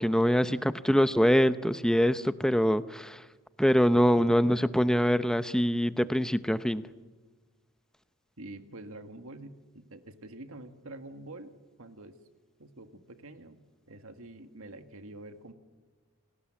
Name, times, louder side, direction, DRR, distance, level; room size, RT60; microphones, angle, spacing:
voice 1, 0.0-3.3 3.6-6.9, equal, 5° left, 12 dB, 0.6 m, -24 dB
voice 2, 8.4-12.2 12.6-15.5, right 2 dB, 65° right, 7 dB, 1.8 m, -46 dB
28.5 x 18.5 x 7.5 m, 1.4 s
head